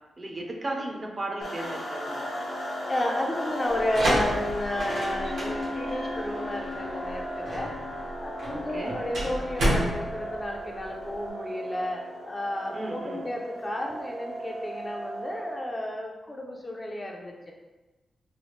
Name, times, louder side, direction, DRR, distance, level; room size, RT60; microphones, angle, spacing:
voice 1, 0.2-2.4 8.5-9.0 12.7-13.3, right 1 dB, 35° right, 1 dB, 0.5 m, -35 dB
sound 1, 1.4-16.0, equal, 70° left, 0.9 m, -36 dB
voice 2, 2.9-17.5, left 1 dB, 25° left, 0 dB, 0.4 m, -32 dB
sound 2, 3.7-11.3, right 1 dB, 85° right, 0.9 m, -30 dB
sound 3, 5.1-10.0, left 2 dB, 90° left, 0.5 m, -40 dB
3.1 x 2.3 x 3.0 m, 1.1 s
cardioid pair, 95°, 0 cm